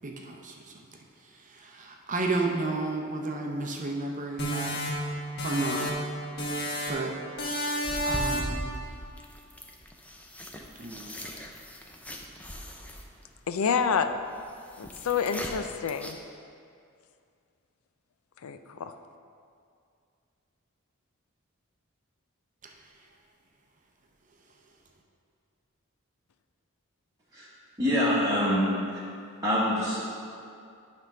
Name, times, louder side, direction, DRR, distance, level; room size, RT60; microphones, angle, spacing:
voice 1, 0.0-0.9 1.3-5.9 6.9-7.2 8.0-8.7 10.8-11.2 22.6-22.7, right 2 dB, 35° right, 1 dB, 0.7 m, -33 dB
sound 1, 4.4-6.1 6.4-7.1 7.4-8.6, equal, 50° left, 1.3 m, -31 dB
sound 2, 7.8-16.1, equal, 5° left, 0.5 m, -40 dB
voice 2, 13.5-14.2 14.8-16.2 18.4-18.9, left 6 dB, 80° left, 9 dB, 0.4 m, -28 dB
voice 3, 27.8-29.0 29.4-30.0, equal, 20° right, -10 dB, 1.3 m, -25 dB
10.0 x 3.5 x 5.8 m, 2.4 s
head